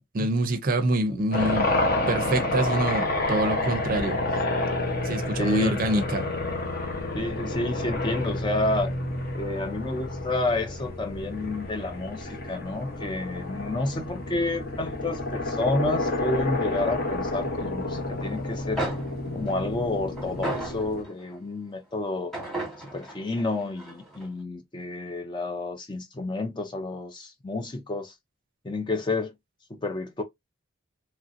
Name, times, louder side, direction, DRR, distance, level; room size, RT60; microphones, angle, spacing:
voice 1, 0.1-1.7 2.1-4.2 5.0-6.3, right 1 dB, 40° right, 0.5 m, -25 dB
sound 1, 1.3-21.0, left 2 dB, 45° left, 0.8 m, -29 dB
voice 2, 5.4-5.8 7.1-8.9 9.3-18.8 19.3-22.3 22.8-28.1 28.6-29.3 29.8-30.2, left 2 dB, 20° left, 0.4 m, -30 dB
sound 2, 18.5-18.6 18.8-21.4 22.3-24.3, right 1 dB, ahead, 1.2 m, -35 dB
3.0 x 2.6 x 2.5 m
head